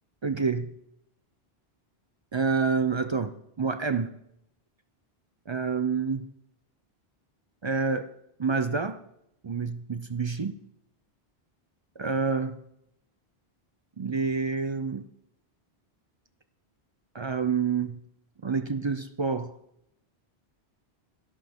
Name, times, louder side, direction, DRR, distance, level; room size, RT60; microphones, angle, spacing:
voice 1, 0.2-0.7 2.3-4.1 5.5-6.3 7.6-8.1 8.4-9.0 9.4-10.5 12.0-12.6 14.0-15.0 17.1-18.0 18.4-19.5, right 5 dB, 40° right, 11 dB, 0.4 m, -28 dB
13.5 x 11.5 x 3.6 m, 0.78 s
omnidirectional pair, 1.1 m